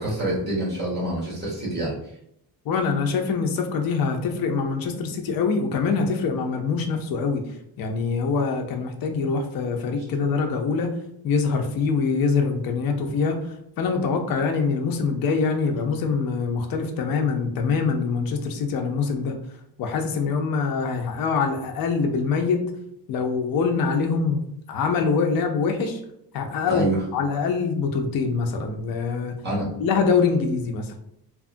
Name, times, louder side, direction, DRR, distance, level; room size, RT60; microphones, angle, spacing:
voice 1, 0.0-1.9 26.7-27.0 29.4-29.7, right 1 dB, 25° right, -6 dB, 1.1 m, -26 dB
voice 2, 2.7-7.4 7.8-10.9 11.2-13.4 13.8-19.3 19.8-22.6 23.1-26.0 26.3-26.9 27.1-29.3 29.8-30.9, left 5 dB, 55° left, 4 dB, 0.5 m, -24 dB
2.8 x 2.3 x 2.5 m, 0.77 s
wide cardioid pair, 165°, 43 cm